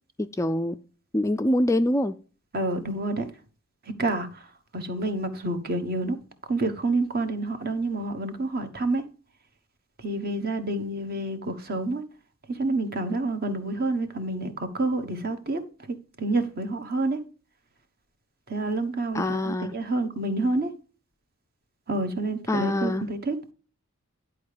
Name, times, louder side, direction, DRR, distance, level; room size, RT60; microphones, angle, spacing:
voice 1, 0.4-0.8 1.1-2.1 19.1-19.7 22.5-23.0, left 1 dB, 15° left, 9 dB, 0.3 m, -24 dB
voice 2, 2.5-3.3 3.8-6.2 6.5-9.0 10.0-12.0 12.5-15.6 15.9-17.2 18.5-20.7 21.9-23.4, right 2 dB, 45° right, 8 dB, 1.2 m, -28 dB
10.5 x 4.7 x 5.0 m, 0.38 s
head